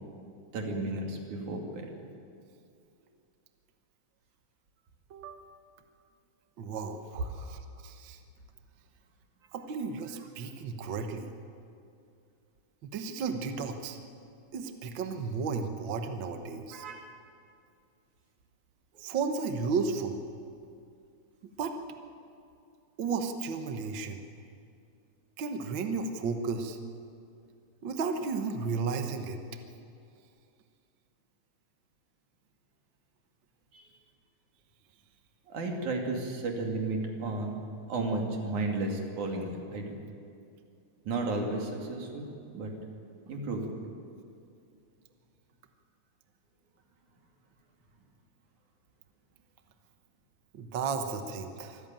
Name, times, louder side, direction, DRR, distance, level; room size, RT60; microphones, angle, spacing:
voice 1, 0.5-1.9 16.7-17.1 33.7-33.8 35.5-37.6 37.9-39.9 41.1-42.3 42.5-42.7 43.3-43.7, right 2 dB, 70° right, 1 dB, 3.9 m, -33 dB
voice 2, 5.1-5.5 6.6-8.2 9.5-11.3 12.8-14.0 14.5-16.8 19.0-20.2 21.6-21.8 23.0-24.2 25.4-26.8 27.8-29.4 50.5-51.8, right 5 dB, 55° right, 6 dB, 1.5 m, -33 dB
25.0 x 14.5 x 9.0 m, 2.5 s
omnidirectional pair, 3.6 m